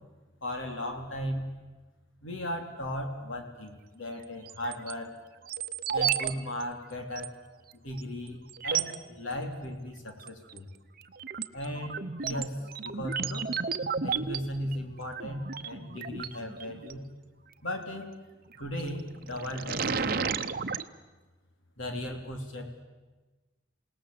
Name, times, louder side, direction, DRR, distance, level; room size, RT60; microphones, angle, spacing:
voice 1, 0.4-1.5 2.2-5.1 5.9-7.3 7.7-10.7 11.5-13.5 14.0-17.1 17.6-18.1 18.6-20.3 21.8-22.8, left 1 dB, 80° left, 4 dB, 3.3 m, -37 dB
sound 1, 4.5-4.9 5.5-6.3 6.6-6.7 7.1-7.3 8.0-8.1 8.5-9.0 10.2-10.6 11.0-16.9 18.5-18.9 19.3-20.8, right 6 dB, 45° right, 0.8 m, -33 dB
27.5 x 18.5 x 7.7 m, 1.2 s
head